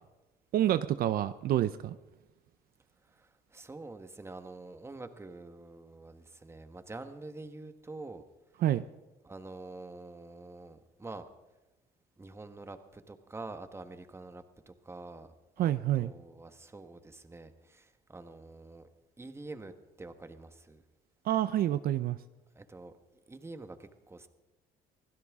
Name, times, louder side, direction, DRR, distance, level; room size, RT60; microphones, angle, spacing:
voice 1, 0.5-2.0 8.6-8.8 15.6-16.1 21.2-22.2, right 12 dB, 60° right, 13 dB, 0.6 m, -28 dB
voice 2, 3.1-8.2 9.2-11.3 12.2-15.3 15.6-15.7 16.0-18.9 19.2-20.8 22.5-23.0 23.3-24.3, right 2 dB, 15° right, 9 dB, 1.3 m, -46 dB
24.0 x 16.0 x 3.6 m, 1.1 s
cardioid pair, 110°, 17 cm